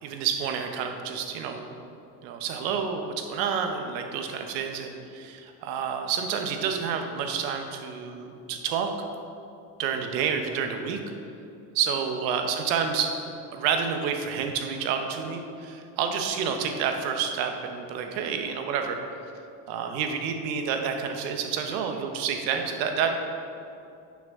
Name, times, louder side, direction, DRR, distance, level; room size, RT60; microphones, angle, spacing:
voice 1, 0.0-1.7 2.2-8.9 9.8-11.0 11.7-13.1 13.5-19.0 19.7-23.2, right 7 dB, 85° right, 5 dB, 1.1 m, -29 dB
10.5 x 6.0 x 3.7 m, 2.6 s
supercardioid pair, 85°, 50 cm